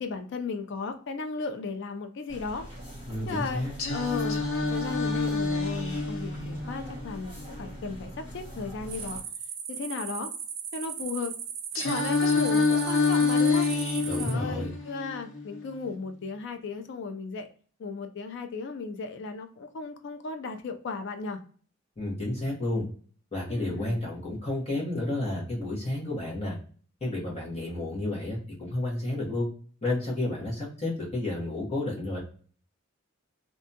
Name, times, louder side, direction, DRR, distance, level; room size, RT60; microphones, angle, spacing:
voice 1, 0.0-2.7 3.3-3.6 3.9-9.2 9.7-10.3 10.7-11.3 11.8-13.7 14.2-17.5 17.8-21.4 23.5-24.0, left 4 dB, 60° left, 6 dB, 0.4 m, -35 dB
sound 1, 2.3-9.2, equal, 10° left, 1.3 m, -43 dB
voice 2, 3.1-3.7 14.1-14.7 22.0-22.9 23.3-26.6 27.0-29.5 29.8-32.2, left 1 dB, 30° left, -4 dB, 1.0 m, -31 dB
Singing, 3.8-7.8 11.8-15.8, left 4 dB, 80° left, 0.8 m, -27 dB
sound 2, 8.9-14.3, right 8 dB, 70° right, 0.5 m, -38 dB
2.6 x 2.2 x 2.6 m, 0.43 s
head